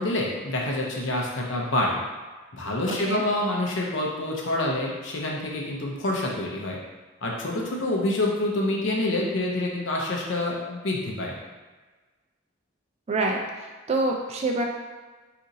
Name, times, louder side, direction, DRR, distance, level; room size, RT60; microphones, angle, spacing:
voice 1, 0.0-2.0 2.5-6.8 7.2-11.3, left 1 dB, 65° left, -1 dB, 0.6 m, -27 dB
voice 2, 2.9-3.2 13.1-14.6, right 2 dB, 30° right, 1 dB, 0.3 m, -26 dB
2.8 x 2.5 x 3.9 m, 1.3 s
head